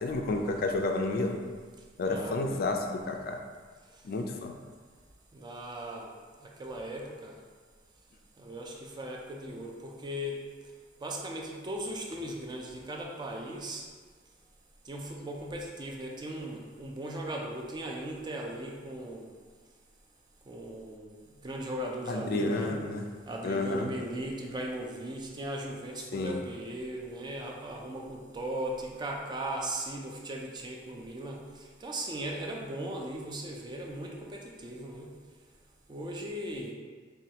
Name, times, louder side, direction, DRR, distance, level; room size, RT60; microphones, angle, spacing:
voice 1, 0.0-1.4 2.0-3.4 4.0-4.5 22.1-23.0 23.4-23.9 26.1-26.4, left 2 dB, 55° left, 3 dB, 0.3 m, -30 dB
voice 2, 2.1-2.7 5.3-6.1 6.4-7.4 8.4-10.4 11.0-13.8 14.9-19.3 20.5-21.1 21.4-22.8 23.3-35.1 35.9-36.7, right 1 dB, 25° right, 0 dB, 0.4 m, -38 dB
4.2 x 2.3 x 2.8 m, 1.5 s
head